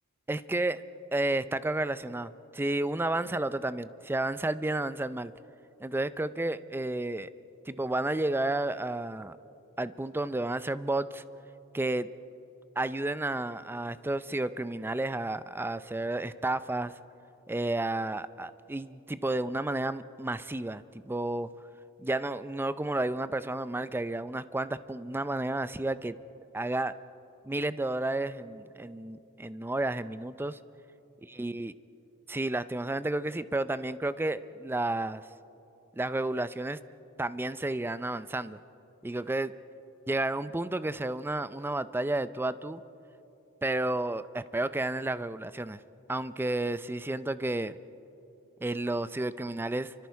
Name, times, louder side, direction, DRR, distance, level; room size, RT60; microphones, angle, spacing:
voice 1, 0.3-0.8 1.1-5.3 5.8-7.3 7.7-9.4 9.8-11.2 11.7-12.1 12.8-16.9 17.5-21.5 22.0-26.2 26.5-26.9 27.5-30.6 31.2-31.7 32.3-35.3 36.0-36.8 37.2-38.6 39.0-39.5 40.1-42.8 43.6-45.8 46.1-47.8 48.6-49.9, right 2 dB, 10° right, 14 dB, 0.4 m, -31 dB
29.0 x 24.5 x 4.7 m, 3.0 s
head